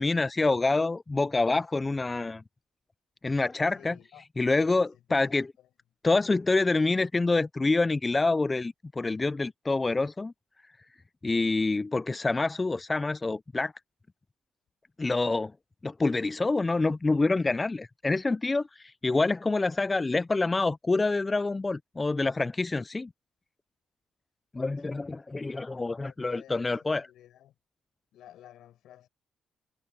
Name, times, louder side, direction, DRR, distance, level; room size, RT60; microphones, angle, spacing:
voice 1, 0.0-2.4 3.2-4.0 4.4-5.5 6.0-10.3 11.2-13.7 15.0-15.5 15.8-23.1 24.5-27.1, left 3 dB, 20° left, 0.4 m, -27 dB
voice 2, 3.7-4.2 4.7-5.7 24.8-25.2 26.0-27.5 28.1-29.1, left 12 dB, 80° left, 7.7 m, -54 dB
cardioid pair, 90°, 0 cm